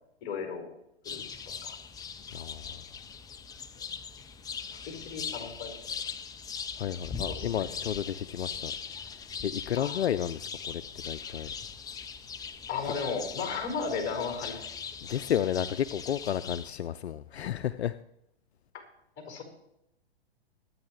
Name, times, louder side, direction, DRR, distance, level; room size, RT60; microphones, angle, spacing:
voice 1, 0.2-0.7 1.0-1.4 1.6-1.8 4.9-5.7 7.2-7.6 9.8-10.0 12.7-14.7 19.2-19.4, left 5 dB, 40° left, 5.2 m, -35 dB
sound 1, 1.0-16.7, left 6 dB, 10° left, 0.5 m, -40 dB
voice 2, 2.3-2.8 6.8-8.7 9.4-11.5 15.0-18.0, left 10 dB, 80° left, 0.6 m, -32 dB
24.5 x 9.6 x 3.2 m
hypercardioid pair, 120°, 32 cm